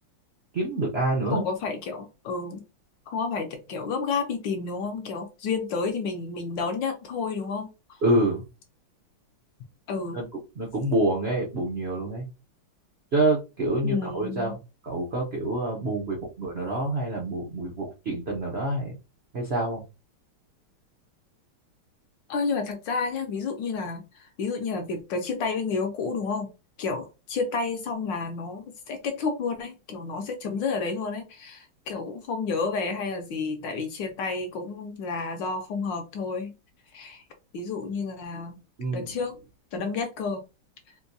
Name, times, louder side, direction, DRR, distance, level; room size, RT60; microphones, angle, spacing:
voice 1, 0.5-1.4 8.0-8.4 10.1-10.3 10.6-12.2 13.1-14.6 14.8-18.9 19.3-19.8 38.8-39.2, right 1 dB, 80° right, -1 dB, 0.5 m, -27 dB
voice 2, 1.2-2.6 3.1-7.7 9.9-10.2 13.8-14.6 22.3-26.5 26.8-36.5 36.9-37.2 37.5-38.6 38.9-39.4 39.7-40.4, left 4 dB, 70° left, 5 dB, 1.2 m, -30 dB
4.4 x 2.2 x 2.6 m, 0.28 s
omnidirectional pair, 2.4 m